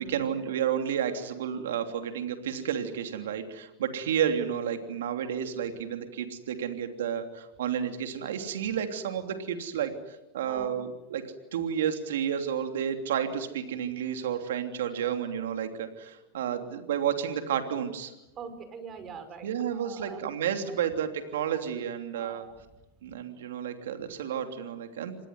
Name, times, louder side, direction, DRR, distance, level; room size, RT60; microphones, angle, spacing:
voice 1, 0.1-11.2 11.5-18.1 19.4-22.5 23.0-25.3, right 8 dB, 80° right, 7 dB, 3.1 m, -31 dB
voice 2, 10.4-10.8 18.3-20.2 20.7-20.8 22.1-22.6, right 6 dB, 35° right, 10 dB, 5.2 m, -44 dB
27.5 x 20.0 x 9.6 m, 0.96 s
hypercardioid pair, 115°, 0 cm